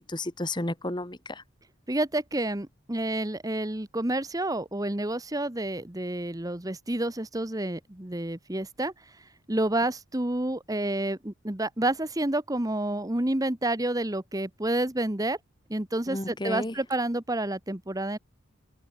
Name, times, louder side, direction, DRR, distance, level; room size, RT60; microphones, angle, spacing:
voice 1, 0.0-1.4 16.1-16.7, left 1 dB, 20° left, 1.9 m, -32 dB
voice 2, 1.9-8.9 9.5-15.4 15.7-18.2, right 1 dB, 15° right, 1.1 m, -29 dB
open air
head